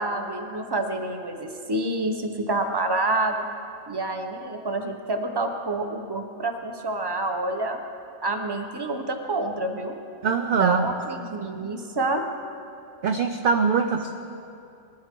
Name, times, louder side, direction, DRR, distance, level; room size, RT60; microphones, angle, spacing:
voice 1, 0.0-3.4 3.9-7.8 8.2-10.0 10.5-12.2, right 2 dB, 20° right, 4 dB, 0.9 m, -28 dB
voice 2, 10.2-10.8 13.0-14.1, right 5 dB, 55° right, 5 dB, 0.6 m, -22 dB
20.5 x 13.5 x 3.7 m, 2.6 s
omnidirectional pair, 1.5 m